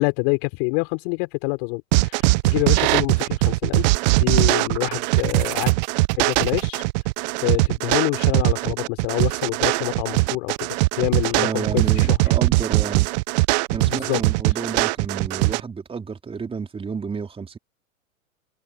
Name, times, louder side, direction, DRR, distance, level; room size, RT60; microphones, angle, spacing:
voice 1, 0.0-3.9 4.1-5.7 6.2-6.8 7.4-10.7 11.0-12.2 13.8-14.2, left 37 dB, 45° left, 4.2 m, -26 dB
sound 1, 1.9-15.6, right 25 dB, 30° right, 0.6 m, -20 dB
voice 2, 11.3-13.1 13.7-17.6, right 5 dB, 15° right, 4.0 m, -30 dB
figure-of-eight pair, 110°, 42 cm